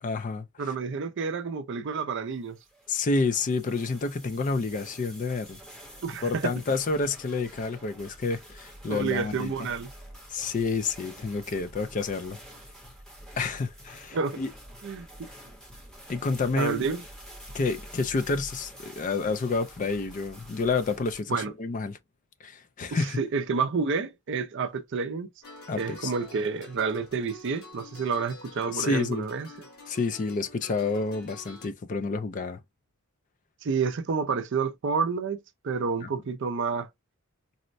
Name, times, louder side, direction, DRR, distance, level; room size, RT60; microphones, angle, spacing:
voice 1, 0.0-0.7 2.9-5.6 6.2-9.5 10.3-12.4 13.4-14.5 16.1-16.8 17.5-22.0 22.4-23.2 25.7-26.1 28.7-29.3 29.9-32.6 36.0-36.1, left 3 dB, 35° left, 0.3 m, -29 dB
voice 2, 0.6-2.6 6.0-6.5 8.9-9.9 14.1-14.4 14.8-15.1 16.6-17.0 21.3-21.5 23.0-25.3 25.8-29.5 33.6-36.9, right 5 dB, 55° right, 0.4 m, -29 dB
sound 1, 2.5-21.2, equal, 5° left, 0.8 m, -48 dB
sound 2, 25.4-31.7, left 2 dB, 80° left, 1.4 m, -47 dB
4.1 x 2.1 x 2.5 m
head